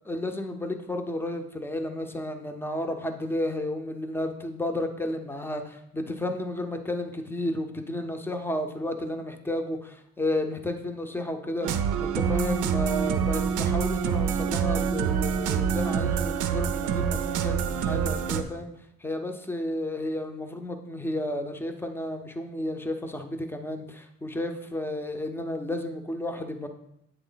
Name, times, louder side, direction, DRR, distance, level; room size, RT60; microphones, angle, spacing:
voice 1, 0.1-18.7 19.0-26.7, left 1 dB, 5° left, 6 dB, 0.6 m, -32 dB
sound 1, 11.6-18.4, right 7 dB, 80° right, 0.5 m, -26 dB
8.2 x 3.2 x 3.9 m, 0.76 s
cardioid pair, 90°, 30 cm